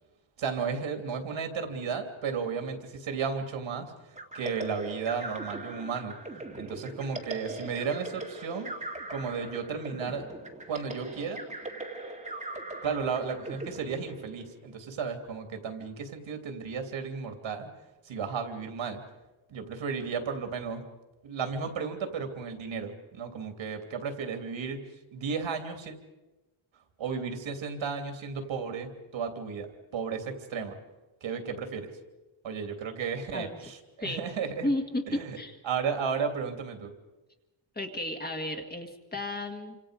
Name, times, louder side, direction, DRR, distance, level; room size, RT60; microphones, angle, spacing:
voice 1, 0.4-3.9 4.3-6.1 6.6-8.7 9.1-10.3 10.7-11.4 12.8-17.7 18.0-19.0 19.5-20.9 21.2-24.8 25.1-25.9 27.0-30.8 31.2-31.9 32.4-34.7 35.1-35.4 35.6-36.9, right 6 dB, 75° right, 6 dB, 3.0 m, -34 dB
sound 1, 4.2-14.7, right 2 dB, 15° right, 2.0 m, -40 dB
voice 2, 34.6-35.6 37.8-39.8, left 1 dB, 20° left, 4 dB, 1.9 m, -33 dB
28.5 x 26.0 x 5.1 m, 1.1 s
wide cardioid pair, 170°, 47 cm